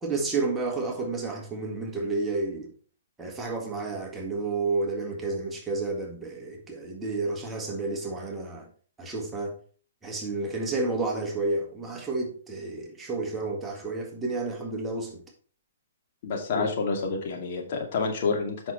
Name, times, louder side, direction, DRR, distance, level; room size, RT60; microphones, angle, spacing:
voice 1, 0.0-2.7 3.2-8.7 9.0-9.5 10.0-15.2 16.5-16.7, right 3 dB, 10° right, 1.7 m, -31 dB
voice 2, 16.2-18.7, left 4 dB, 50° left, 2.2 m, -28 dB
7.9 x 6.1 x 4.2 m
hypercardioid pair, 130°, 0 cm